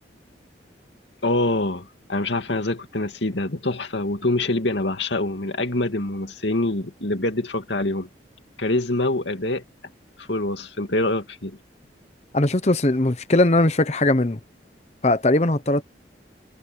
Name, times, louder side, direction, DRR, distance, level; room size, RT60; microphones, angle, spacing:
voice 1, 1.2-8.1 8.6-9.6 10.2-11.6, left 2 dB, 70° left, 2.6 m, -25 dB
voice 2, 12.3-14.4 15.0-15.8, left 2 dB, 35° left, 1.0 m, -19 dB
head